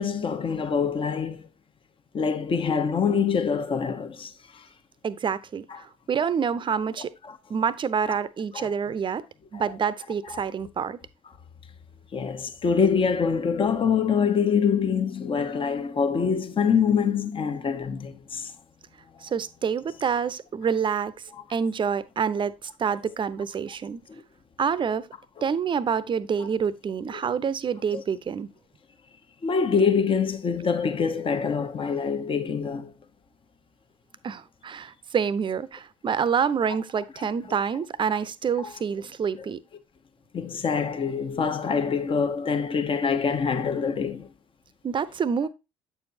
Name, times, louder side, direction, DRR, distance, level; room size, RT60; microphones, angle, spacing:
voice 1, 0.0-1.5 2.1-4.6 5.7-5.8 7.2-7.4 8.1-8.2 8.5-8.7 9.5-9.6 10.3-10.4 12.1-18.5 27.9-28.0 29.4-32.9 37.2-37.3 38.6-38.7 40.3-44.3, left 6 dB, 35° left, 1.1 m, -25 dB
voice 2, 5.0-7.1 7.5-9.2 9.5-11.0 19.2-21.1 21.5-24.0 24.6-25.1 25.4-28.5 34.2-39.6 44.8-45.5, right 7 dB, 35° right, 0.7 m, -27 dB
8.6 x 7.0 x 2.7 m
figure-of-eight pair, 55°, 15 cm